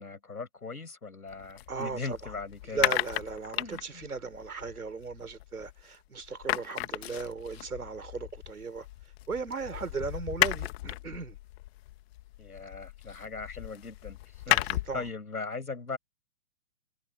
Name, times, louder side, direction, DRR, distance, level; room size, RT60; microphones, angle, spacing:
voice 1, 0.0-2.9 3.6-4.1 12.4-14.2 14.5-14.7 14.9-16.0, left 4 dB, 90° left, 7.5 m, -39 dB
sound 1, 1.3-5.9 6.2-15.1, left 17 dB, 45° left, 1.7 m, -34 dB
voice 2, 1.7-2.3 2.6-8.9 9.3-11.4 14.5-15.1, right 4 dB, 85° right, 5.0 m, -37 dB
hypercardioid pair, 120°, 43 cm